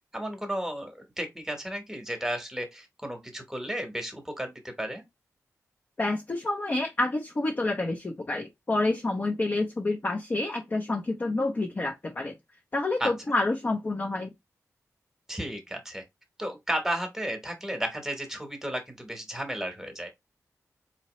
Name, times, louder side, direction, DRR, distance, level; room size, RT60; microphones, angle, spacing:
voice 1, 0.1-5.0 13.0-13.1 15.3-16.0 16.4-20.1, equal, 5° right, 1.1 m, -33 dB
voice 2, 6.0-12.3 12.7-14.3, left 2 dB, 35° left, 0.7 m, -28 dB
4.2 x 2.9 x 3.1 m
wide cardioid pair, 125°, 6 cm